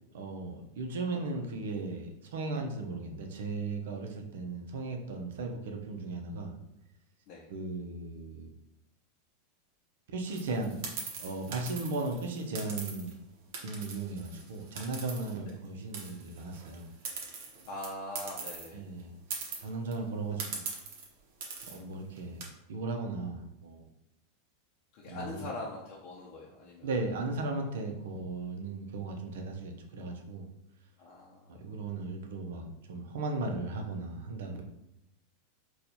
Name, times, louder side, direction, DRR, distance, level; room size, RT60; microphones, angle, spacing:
voice 1, 0.1-6.5 7.5-8.5 10.1-10.8 11.2-13.2 13.6-16.9 18.7-19.1 19.6-20.6 21.7-22.4 22.7-23.8 25.1-25.5 26.8-30.5 31.5-34.6, right 3 dB, 80° right, 3 dB, 0.6 m, -36 dB
sound 1, 10.3-13.1 13.5-15.7 15.9-18.7 19.0-19.1 19.3-19.9 20.4-21.1 21.4-21.8 22.2-22.4, right 5 dB, 60° right, 0.9 m, -41 dB
voice 2, 17.6-18.8 24.9-26.9 31.0-31.5, left 2 dB, 50° left, -3 dB, 0.6 m, -42 dB
4.3 x 2.3 x 2.7 m, 0.85 s
supercardioid pair, 140°, 0 cm